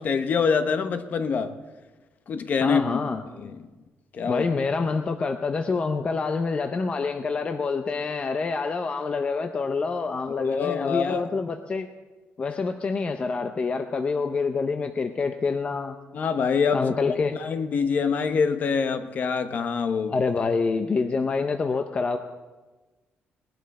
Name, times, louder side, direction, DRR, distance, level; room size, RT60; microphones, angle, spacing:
voice 1, 0.0-1.5 2.3-2.8 3.3-3.6 4.1-4.4 10.3-11.3 16.1-16.9 17.3-20.2, left 5 dB, 45° left, 0.9 m, -25 dB
voice 2, 2.6-3.2 4.2-11.9 12.4-16.0 16.7-17.4 20.1-22.2, left 4 dB, 30° left, 0.6 m, -26 dB
19.5 x 11.0 x 4.2 m
cardioid pair, 145°, 4 cm